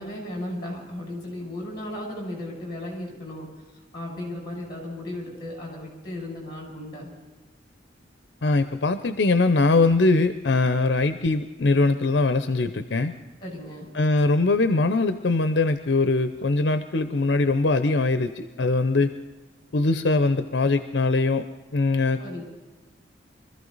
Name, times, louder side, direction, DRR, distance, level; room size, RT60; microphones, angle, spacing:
voice 1, 0.0-3.5 3.9-7.1 13.4-13.9 22.2-22.4, left 1 dB, 25° left, -1 dB, 6.3 m, -35 dB
voice 2, 8.4-13.1 13.9-19.1 19.7-21.4 21.7-22.2, left 3 dB, 70° left, 10 dB, 0.6 m, -22 dB
24.0 x 14.5 x 4.0 m, 1.2 s
head